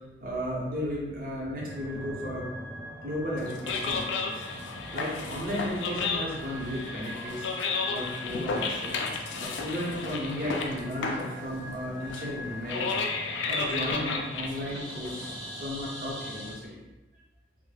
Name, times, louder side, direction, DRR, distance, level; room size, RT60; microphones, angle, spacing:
voice 1, 0.2-2.5 3.0-4.4 4.9-7.5 7.8-9.0 9.4-13.1 13.5-16.8, equal, 50° right, -5 dB, 0.7 m, -34 dB
sound 1, 1.4-16.5, equal, ahead, 0.6 m, -43 dB
sound 2, 3.4-15.6, left 4 dB, 85° left, 0.3 m, -33 dB
2.2 x 2.0 x 3.2 m, 1.1 s
head